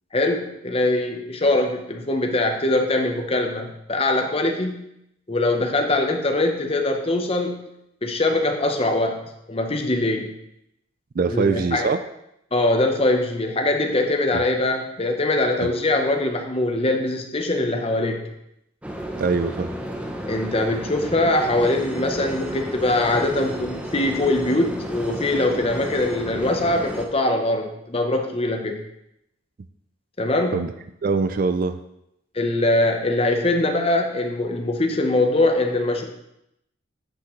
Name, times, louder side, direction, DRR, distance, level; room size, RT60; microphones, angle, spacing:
voice 1, 0.1-4.8 5.3-7.6 8.0-10.3 11.3-11.9 12.5-18.3 20.3-28.8 30.2-30.6 32.3-36.0, left 2 dB, 30° left, 3 dB, 0.9 m, -22 dB
voice 2, 11.2-12.0 14.3-14.4 15.6-15.7 19.2-19.7 30.5-30.7 31.0-31.8, right 4 dB, 45° right, 9 dB, 0.4 m, -23 dB
sound 1, 18.8-27.1, equal, 5° right, 0.7 m, -32 dB
10.0 x 6.0 x 3.1 m, 0.81 s
head